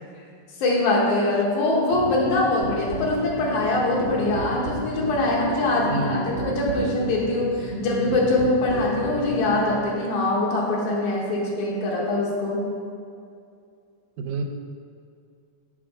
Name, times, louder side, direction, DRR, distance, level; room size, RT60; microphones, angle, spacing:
voice 1, 0.6-12.7, left 2 dB, 80° left, -3 dB, 2.6 m, -23 dB
sound 1, 1.9-9.9, equal, 60° right, 1.6 m, -33 dB
voice 2, 5.9-7.0 7.7-7.8 14.2-14.4, right 3 dB, 85° right, 4 dB, 2.1 m, -31 dB
7.7 x 3.8 x 6.6 m, 2.3 s
omnidirectional pair, 3.4 m